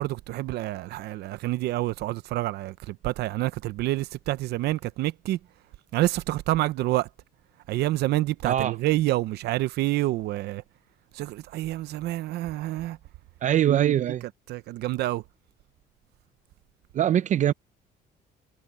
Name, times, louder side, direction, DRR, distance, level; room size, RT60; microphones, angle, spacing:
voice 1, 0.0-5.4 5.9-7.1 7.7-10.6 11.1-13.0 13.7-13.9 14.5-15.2, right 16 dB, 75° right, 0.7 m, -28 dB
voice 2, 13.4-14.2 16.9-17.5, right 11 dB, 45° right, 0.5 m, -22 dB
cardioid pair, 110°, 17 cm